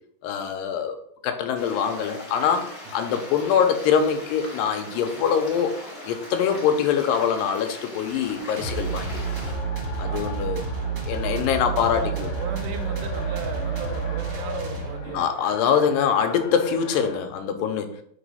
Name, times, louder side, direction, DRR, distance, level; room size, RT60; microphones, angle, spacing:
voice 1, 0.2-1.0 1.2-5.7 6.0-9.2 10.0-10.7 11.1-12.3 15.1-18.0, left 7 dB, 85° left, 2.3 m, -24 dB
Stream, 1.5-9.5, left 1 dB, 25° left, 1.4 m, -40 dB
Race car auto racing, 8.0-17.3, left 2 dB, 65° left, 2.1 m, -38 dB
sound 1, 8.6-15.3, right 5 dB, 60° right, 1.6 m, -30 dB
voice 2, 10.0-10.4 11.6-15.3 15.6-15.9, right 6 dB, 80° right, 2.0 m, -37 dB
4.6 x 4.0 x 5.3 m
omnidirectional pair, 4.1 m